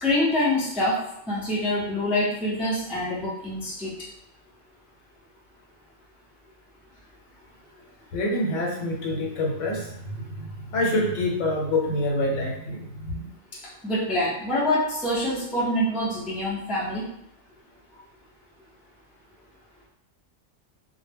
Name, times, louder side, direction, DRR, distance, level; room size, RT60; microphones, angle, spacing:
voice 1, 0.0-1.0 1.3-3.9 13.8-17.0, left 1 dB, ahead, -7 dB, 0.3 m, -25 dB
voice 2, 8.1-13.3, left 1 dB, 80° left, -1 dB, 1.0 m, -27 dB
2.1 x 2.0 x 3.3 m, 0.77 s
omnidirectional pair, 1.3 m